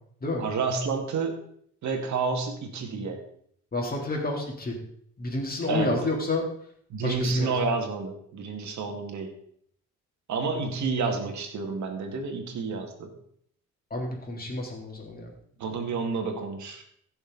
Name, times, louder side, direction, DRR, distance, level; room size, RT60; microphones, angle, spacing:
voice 1, 0.4-1.4 1.8-3.2 5.7-5.9 6.9-9.3 10.3-13.1 15.6-16.8, right 4 dB, 70° right, 4 dB, 2.3 m, -29 dB
voice 2, 3.7-4.8 5.2-6.5 7.0-7.6 13.9-15.3, left 2 dB, 30° left, -1 dB, 3.8 m, -29 dB
15.5 x 6.9 x 4.1 m, 0.65 s
cardioid pair, 90°, 30 cm